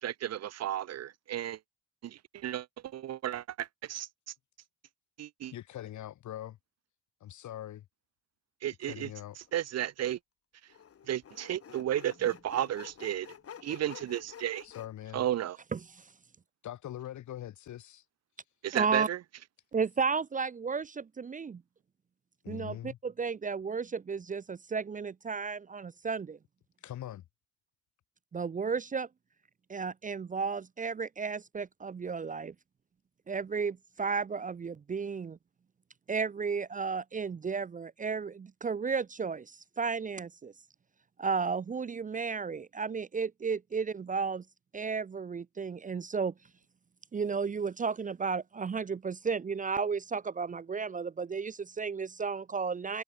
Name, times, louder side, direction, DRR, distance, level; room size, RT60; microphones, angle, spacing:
voice 1, 0.0-1.6 2.0-2.7 2.9-4.1 5.2-5.5 8.6-9.1 9.5-10.2 11.1-13.3 13.6-14.7 15.1-15.6 18.6-19.2, right 12 dB, 60° right, 0.8 m, -33 dB
voice 2, 5.5-6.6 7.2-7.9 8.8-9.4 14.6-15.3 16.6-18.0 22.4-23.0 26.8-27.2, left 12 dB, 70° left, 2.5 m, -42 dB
Sawing, 9.5-9.6 10.7-14.9, left 8 dB, 50° left, 2.4 m, -49 dB
voice 3, 15.7-16.1 18.7-19.1 19.7-21.6 22.5-26.4 28.3-29.1 29.7-32.5 33.3-35.4 36.1-40.5 41.2-44.4 44.7-46.3 47.1-53.0, right 5 dB, 25° right, 0.6 m, -33 dB
cardioid pair, 90°, 30 cm